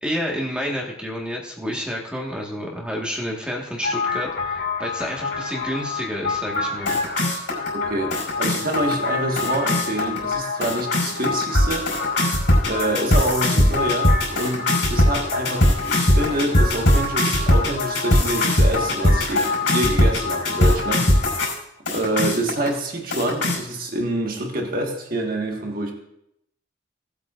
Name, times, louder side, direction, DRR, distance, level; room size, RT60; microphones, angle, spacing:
voice 1, 0.0-7.0, equal, 5° right, -1 dB, 1.6 m, -29 dB
sound 1, 3.8-21.5 21.9-22.7 23.1-23.6, left 1 dB, 70° left, 4.7 m, -21 dB
voice 2, 7.7-11.9 12.7-21.6 21.9-25.9, right 1 dB, 45° right, 1 dB, 1.7 m, -26 dB
18.0 x 8.3 x 2.5 m, 0.77 s
head